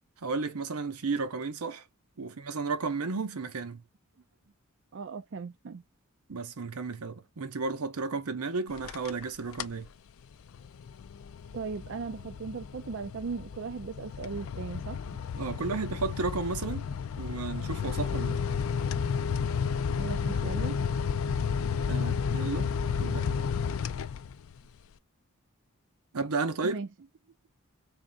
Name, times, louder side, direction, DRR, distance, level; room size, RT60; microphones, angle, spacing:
voice 1, 0.2-1.8 2.2-3.8 6.3-9.9 15.4-16.9 17.2-18.4 21.9-23.3 26.1-26.8, right 4 dB, 90° right, 0.8 m, -33 dB
voice 2, 4.9-5.8 11.5-15.2 18.6-18.9 20.0-20.8 23.2-23.5 26.6-26.9, right 5 dB, 55° right, 0.4 m, -38 dB
sound 1, 8.7-9.2 9.5-9.9 10.3-24.6, left 6 dB, 65° left, 0.4 m, -32 dB
3.6 x 3.6 x 2.5 m
head